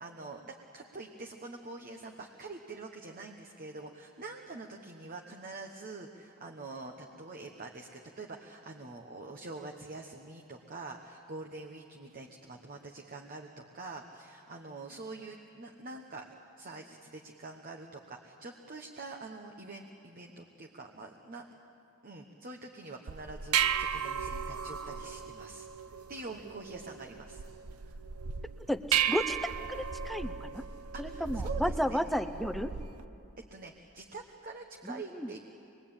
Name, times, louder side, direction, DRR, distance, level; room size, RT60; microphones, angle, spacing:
voice 1, 0.0-16.3 16.6-21.4 22.0-25.7 26.1-27.4 27.8-28.0 30.9-32.0 33.5-35.4, right 3 dB, 40° right, 2 dB, 1.2 m, -45 dB
sound 1, 23.1-33.0, right 7 dB, 80° right, 0.8 m, -35 dB
voice 2, 28.7-29.4 29.7-30.6 31.0-32.7 34.8-35.3, equal, ahead, 10 dB, 0.6 m, -33 dB
24.0 x 21.5 x 8.9 m, 2.7 s
head